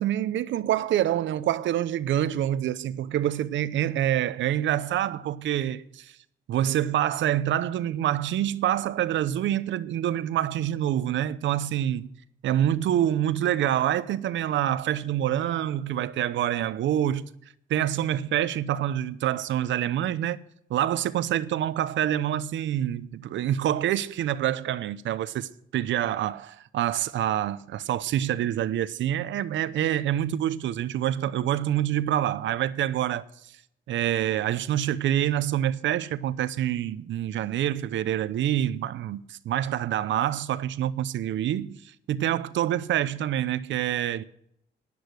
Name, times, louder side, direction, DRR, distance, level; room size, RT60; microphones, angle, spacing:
voice 1, 0.0-6.1 6.5-12.1 12.4-17.2 17.7-20.4 20.7-33.2 33.9-41.8 42.1-44.2, right 11 dB, 70° right, 0.7 m, -26 dB
11.5 x 10.0 x 6.3 m
cardioid pair, 90°, 20 cm